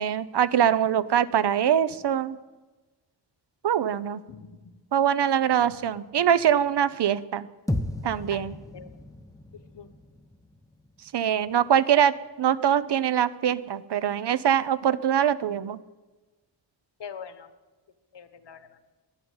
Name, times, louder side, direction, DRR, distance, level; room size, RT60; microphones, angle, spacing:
voice 1, 0.0-2.4 3.6-4.2 4.9-7.5 8.0-8.6 11.1-15.8, right 9 dB, 65° right, 16 dB, 0.7 m, -23 dB
voice 2, 4.3-4.7 5.6-5.7 8.3-8.4 8.7-8.9 9.7-9.9 17.0-17.5 18.1-18.8, left 7 dB, 70° left, 11 dB, 1.3 m, -43 dB
sound 1, 7.7-12.0, left 1 dB, 10° left, 0.8 m, -35 dB
11.5 x 9.8 x 9.6 m, 1.2 s
wide cardioid pair, 140°, 44 cm